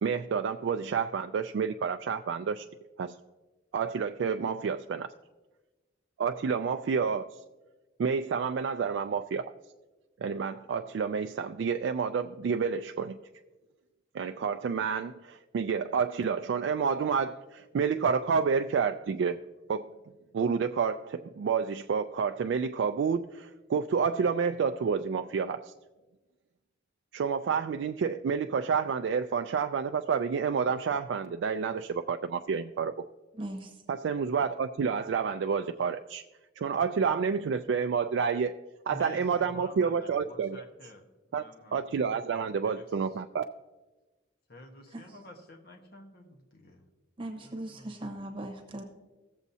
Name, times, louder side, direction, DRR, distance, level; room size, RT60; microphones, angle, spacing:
voice 1, 0.0-2.7 3.0-3.1 3.7-5.1 6.2-7.2 8.0-9.5 10.2-13.2 14.1-19.4 19.7-19.9 20.3-25.7 27.1-32.9 33.9-36.2 36.6-38.5 38.9-40.6 41.3-41.4 41.7-43.4, right 6 dB, 80° right, 0.3 m, -29 dB
voice 2, 33.3-33.8 44.9-45.0 47.2-48.8, right 1 dB, 30° right, 1.0 m, -39 dB
voice 3, 38.9-41.9 42.6-43.2 44.5-46.9 47.4-47.9, left 1 dB, 55° left, 1.2 m, -50 dB
17.0 x 7.1 x 2.7 m
head